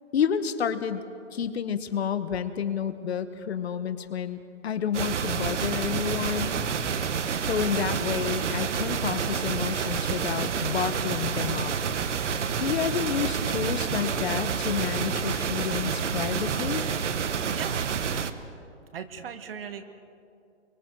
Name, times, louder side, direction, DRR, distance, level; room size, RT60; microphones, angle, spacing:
voice 1, 0.1-1.0 1.3-6.6 7.4-11.7 12.6-16.9, left 8 dB, 60° left, 11 dB, 1.3 m, -30 dB
sound 1, 4.9-18.3, right 6 dB, 75° right, 1.2 m, -29 dB
voice 2, 17.4-17.8 18.9-19.8, right 7 dB, 50° right, 8 dB, 1.6 m, -39 dB
23.5 x 23.5 x 4.7 m, 2.5 s
hypercardioid pair, 155°, 36 cm